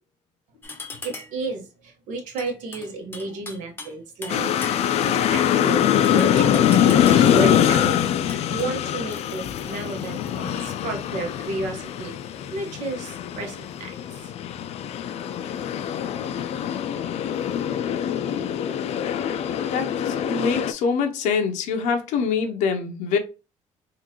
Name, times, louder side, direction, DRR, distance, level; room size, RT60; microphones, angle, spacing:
sound 1, 0.6-1.5 2.4-5.1 6.0-7.4 8.3-8.7, left 3 dB, 15° left, 0.7 m, -40 dB
voice 1, 1.0-14.6, right 3 dB, 80° right, 1.1 m, -33 dB
sound 2, 4.3-20.7, left 10 dB, 60° left, 0.4 m, -23 dB
voice 2, 19.7-23.2, left 5 dB, 85° left, 0.7 m, -24 dB
3.8 x 2.5 x 2.9 m
cardioid pair, 125°, 13 cm